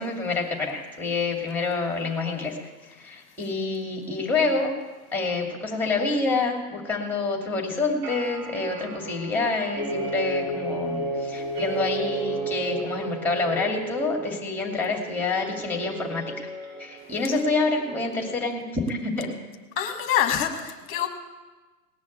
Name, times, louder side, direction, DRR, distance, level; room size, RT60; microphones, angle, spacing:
voice 1, 0.0-2.6 3.0-4.7 5.1-16.2 16.8-19.3, left 3 dB, 5° left, 2 dB, 2.5 m, -27 dB
sound 1, 5.8-18.3, right 6 dB, 65° right, 5.7 m, -38 dB
sound 2, 9.8-14.5, equal, 35° right, 6.0 m, -32 dB
voice 2, 19.8-21.1, left 10 dB, 25° left, 6 dB, 1.4 m, -25 dB
18.5 x 6.3 x 8.8 m, 1.2 s
figure-of-eight pair, 110°, 48 cm